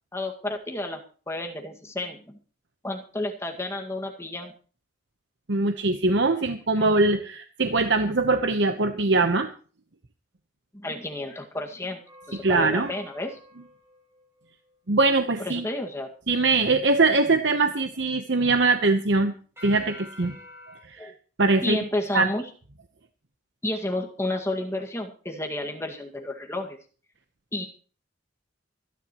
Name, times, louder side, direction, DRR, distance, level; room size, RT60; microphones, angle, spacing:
voice 1, 0.1-1.0 1.3-2.4 2.8-4.5 6.8-6.9 10.7-12.0 12.3-13.4 15.4-16.1 21.0-21.1 21.6-22.5 23.6-26.8 27.5-27.7, left 1 dB, 15° left, 2 dB, 1.9 m, -31 dB
voice 2, 5.5-9.5 12.4-12.9 14.9-15.6 16.3-19.3 19.6-20.3 20.9-21.1 21.4-21.8 22.1-22.3, right 3 dB, 60° right, 7 dB, 1.0 m, -22 dB
sound 1, 12.0-15.0 19.6-20.8, left 1 dB, 15° right, 6.9 m, -47 dB
25.0 x 10.5 x 3.1 m, 0.39 s
head